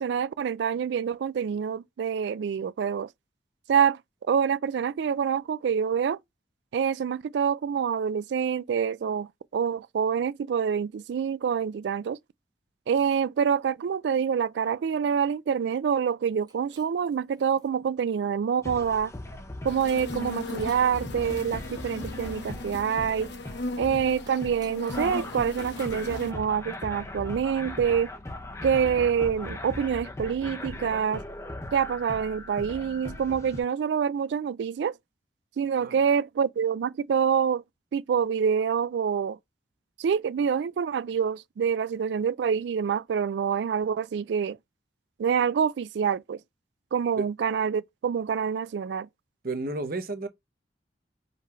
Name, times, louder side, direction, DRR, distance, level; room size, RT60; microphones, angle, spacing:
voice 1, 0.0-3.1 3.7-4.0 4.3-6.2 6.7-12.2 12.9-19.1 19.6-23.3 23.8-28.1 28.6-31.2 31.7-34.9 35.6-37.6 37.9-39.4 40.0-44.6 45.2-46.4 46.9-49.1, right 7 dB, 70° right, 0.3 m, -26 dB
Shatter, 16.3-17.7 18.3-18.7 19.9-21.0 24.2-25.2 25.6-26.2, right 4 dB, 20° right, 0.8 m, -54 dB
sound 1, 18.6-33.6, left 2 dB, 15° left, 0.5 m, -39 dB
sound 2, 19.7-26.3, left 2 dB, 75° left, 1.0 m, -38 dB
voice 2, 49.4-50.3, right 3 dB, 55° right, 0.8 m, -31 dB
3.9 x 3.2 x 4.2 m
head